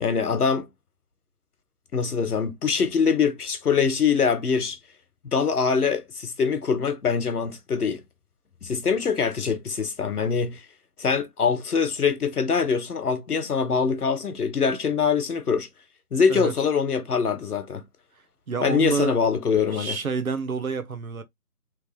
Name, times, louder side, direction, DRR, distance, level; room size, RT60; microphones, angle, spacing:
voice 1, 0.0-0.7 1.9-4.8 5.2-8.0 8.6-10.6 11.0-15.7 16.1-17.8 18.6-20.0, left 6 dB, 75° left, 1.0 m, -23 dB
voice 2, 18.5-19.2 19.7-21.2, right 5 dB, 65° right, 0.8 m, -28 dB
3.2 x 2.3 x 3.1 m
hypercardioid pair, 180°, 46 cm